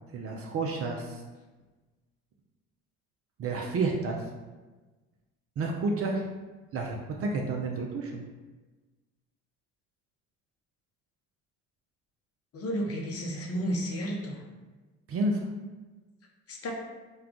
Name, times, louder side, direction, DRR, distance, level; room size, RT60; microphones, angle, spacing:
voice 1, 0.1-1.2 3.4-4.2 5.6-6.3 6.7-8.2 15.1-15.5, right 3 dB, 35° right, 1 dB, 0.5 m, -30 dB
voice 2, 12.5-14.4 16.5-16.7, equal, 35° left, 0 dB, 0.7 m, -32 dB
2.3 x 2.3 x 3.7 m, 1.2 s
hypercardioid pair, 55°, 40 cm